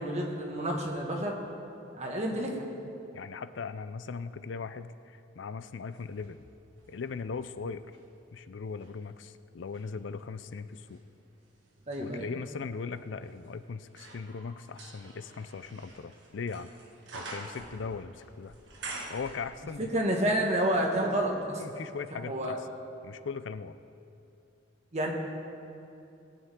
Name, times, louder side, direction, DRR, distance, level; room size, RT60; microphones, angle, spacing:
voice 1, 0.0-1.4 1.9-2.7 11.9-12.3 19.9-21.6 22.1-22.6 24.9-25.1, right 1 dB, 35° right, 0 dB, 1.7 m, -29 dB
voice 2, 3.1-6.4 6.9-7.8 8.3-11.0 12.0-16.7 17.1-18.5 19.1-19.8 21.6-22.6 23.0-23.8, left 5 dB, 70° left, 13 dB, 0.5 m, -39 dB
sound 1, 5.9-8.1 8.6-20.0 20.2-20.3, right 2 dB, 75° right, 1.6 m, -48 dB
21.0 x 9.3 x 3.7 m, 2.7 s
head